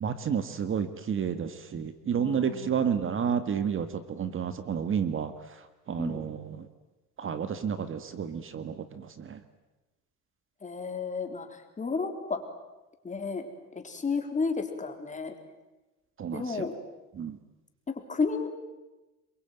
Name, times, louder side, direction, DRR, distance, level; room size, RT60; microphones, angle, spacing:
voice 1, 0.0-5.3 5.9-6.7 7.2-9.4 16.2-16.7 17.2-17.4, right 7 dB, 40° right, 11 dB, 1.8 m, -31 dB
voice 2, 2.2-2.8 6.0-6.2 10.6-11.5 11.8-12.4 13.0-13.5 13.8-15.3 16.3-16.8 17.9-18.6, left 4 dB, 25° left, 5 dB, 4.0 m, -32 dB
26.5 x 23.0 x 9.3 m, 1.1 s
cardioid pair, 115°, 32 cm